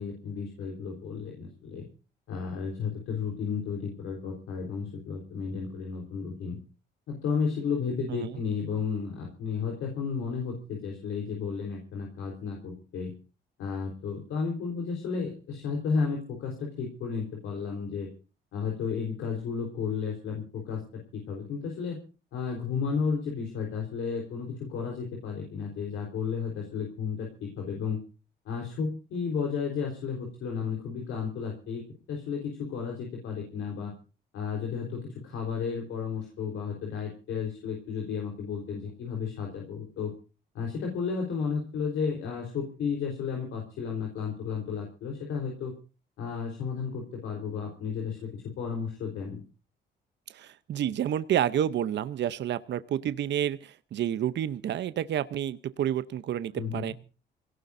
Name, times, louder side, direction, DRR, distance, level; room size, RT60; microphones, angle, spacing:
voice 1, 0.0-1.8 2.3-6.6 7.1-13.1 13.6-18.1 18.5-20.8 21.1-22.0 22.3-28.0 28.4-31.8 32.1-33.9 34.3-40.1 40.5-45.7 46.2-48.3 48.6-49.4 56.5-56.9, left 5 dB, 85° left, 0 dB, 4.1 m, -33 dB
voice 2, 50.3-56.9, right 10 dB, 65° right, 14 dB, 0.8 m, -29 dB
26.0 x 17.5 x 2.7 m, 0.35 s
cardioid pair, 90°, 20 cm